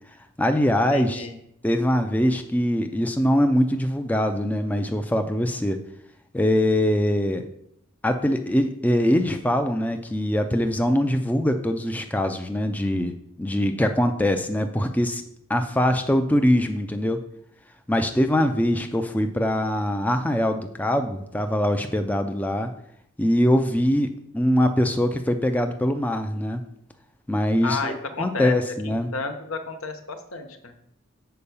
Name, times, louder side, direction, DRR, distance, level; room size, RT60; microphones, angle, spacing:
voice 1, 0.4-1.3 1.6-5.8 6.3-7.4 8.0-15.2 15.5-17.2 17.9-22.7 23.2-24.1 24.3-26.6 27.3-29.1, equal, 5° left, 6 dB, 0.4 m, -23 dB
voice 2, 0.9-1.3 27.6-28.5 28.8-30.9, left 4 dB, 80° left, 6 dB, 1.0 m, -32 dB
6.8 x 4.7 x 6.9 m, 0.75 s
head